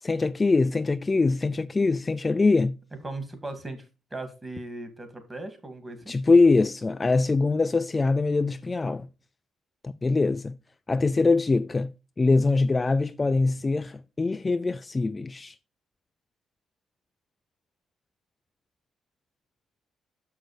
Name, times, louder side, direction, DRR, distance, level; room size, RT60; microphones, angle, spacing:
voice 1, 0.0-2.8 6.1-9.1 9.8-10.5 10.9-11.9 12.2-15.6, left 3 dB, 25° left, 0.3 m, -23 dB
voice 2, 3.0-6.2, right 2 dB, 20° right, 2.2 m, -38 dB
6.4 x 6.1 x 4.9 m
cardioid pair, 90°, 0 cm